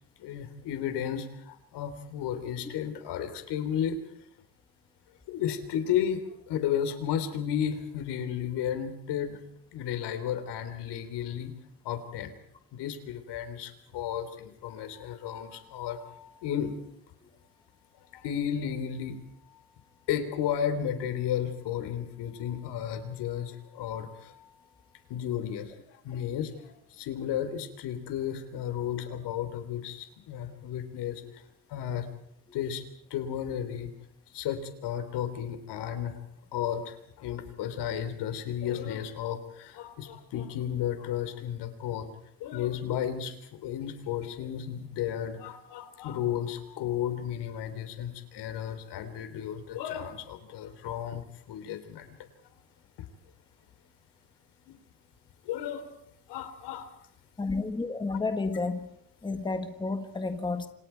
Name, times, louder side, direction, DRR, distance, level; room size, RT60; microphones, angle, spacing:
voice 1, 0.2-4.0 5.3-9.4 9.7-11.5 11.8-12.3 12.7-16.7 18.1-19.2 20.1-24.5 25.1-31.2 31.7-32.1 32.5-32.8 33.1-33.9 34.3-36.2 36.5-42.1 42.4-43.4 43.6-52.2 54.7-54.8 55.5-55.9 56.3-56.9, left 9 dB, 90° left, 3.7 m, -33 dB
voice 2, 57.4-59.0 59.2-60.7, left 3 dB, 10° left, 1.3 m, -31 dB
29.0 x 26.5 x 4.7 m
cardioid pair, 175°, 39 cm